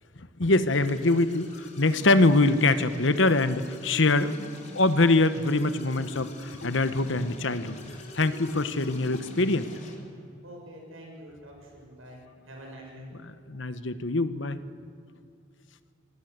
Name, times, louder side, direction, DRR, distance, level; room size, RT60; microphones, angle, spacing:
voice 1, 0.4-9.7 13.0-14.6, left 2 dB, 65° left, 12 dB, 1.1 m, -24 dB
sound 1, 0.7-9.9, left 1 dB, 35° left, 3.4 m, -45 dB
voice 2, 10.4-13.1, right 1 dB, 80° right, 0 dB, 6.6 m, -46 dB
25.5 x 18.5 x 8.1 m, 2.2 s
head